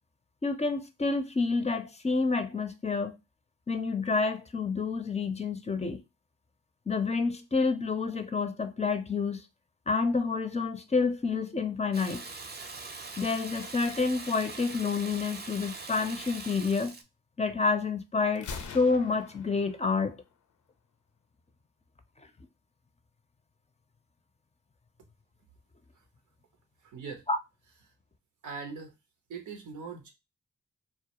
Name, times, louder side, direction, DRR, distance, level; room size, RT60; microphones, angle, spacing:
voice 1, 0.4-3.2 3.7-6.0 6.9-9.4 9.9-12.2 13.2-16.9 17.4-20.2 27.3-27.4, left 4 dB, 20° left, 0.5 m, -29 dB
Water tap faucet / Bathtub (filling or washing), 11.9-17.0, right 4 dB, 35° right, 0.5 m, -42 dB
Gunshot gunfire, 18.3-20.3, left 5 dB, 75° left, 0.5 m, -43 dB
voice 2, 26.8-27.2 28.4-29.0 29.3-30.1, right 5 dB, 90° right, 0.6 m, -40 dB
2.3 x 2.0 x 2.8 m
supercardioid pair, 40°, 30 cm